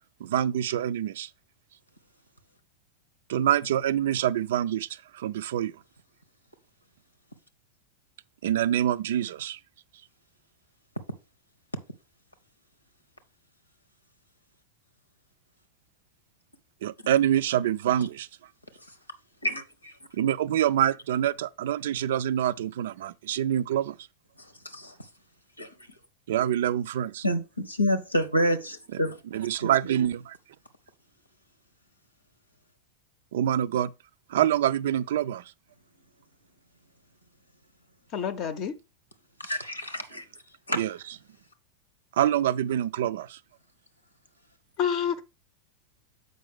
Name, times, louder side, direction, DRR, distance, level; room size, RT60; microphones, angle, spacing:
voice 1, 0.2-1.3 3.3-5.8 8.4-9.6 16.8-18.3 20.1-24.0 26.3-27.2 29.3-30.4 33.3-33.9 34.3-35.5 40.8-40.9 42.1-43.4, right 11 dB, 55° right, 0.3 m, -26 dB
voice 2, 19.4-20.1 24.4-25.1 25.6-26.0 27.2-29.2 29.6-29.9 39.4-40.8, equal, 85° left, 0.9 m, -29 dB
voice 3, 38.1-38.7 44.8-45.2, left 8 dB, 40° left, 0.6 m, -28 dB
7.6 x 5.2 x 3.5 m
figure-of-eight pair, 90°, 0 cm